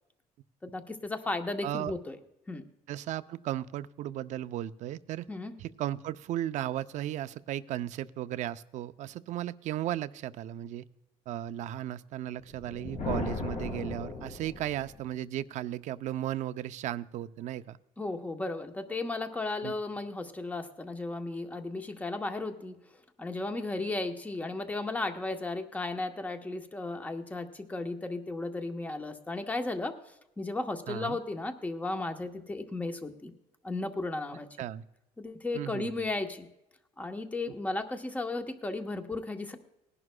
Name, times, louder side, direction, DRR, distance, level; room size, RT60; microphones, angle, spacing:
voice 1, 0.6-2.2 2.5-2.6 5.3-5.6 18.0-22.8 23.2-33.3 33.6-34.5 35.2-36.5 37.0-39.6, left 2 dB, 10° left, 6 dB, 0.9 m, -35 dB
voice 2, 2.9-5.3 5.6-10.8 11.3-17.8 19.6-19.7 30.9-31.2 34.6-34.8 35.5-35.9, right 12 dB, 60° right, 13 dB, 0.5 m, -35 dB
Thunder, 12.5-15.0, left 3 dB, 55° left, 3.2 m, -37 dB
20.0 x 11.0 x 2.2 m, 0.90 s
cardioid pair, 140°, 14 cm